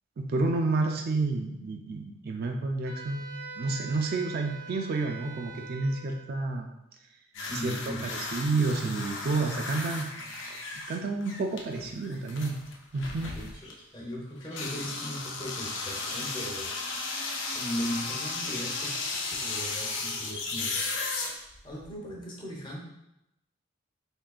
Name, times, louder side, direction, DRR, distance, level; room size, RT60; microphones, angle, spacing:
voice 1, 0.2-6.7 7.6-7.8 8.1-10.5 10.9-12.6 12.9-13.3, right 3 dB, 50° right, 3 dB, 0.3 m, -30 dB
Wind instrument woodwind instrument, 2.8-6.3, right 4 dB, 85° right, 0.6 m, -43 dB
sound 1, 7.3-13.8 14.4-21.9, left 3 dB, 65° left, 0.5 m, -35 dB
voice 2, 7.5-8.1 13.3-16.7 17.5-19.1 19.4-20.8 21.6-22.8, equal, 25° left, -3 dB, 0.8 m, -38 dB
3.7 x 3.4 x 2.3 m, 0.85 s
head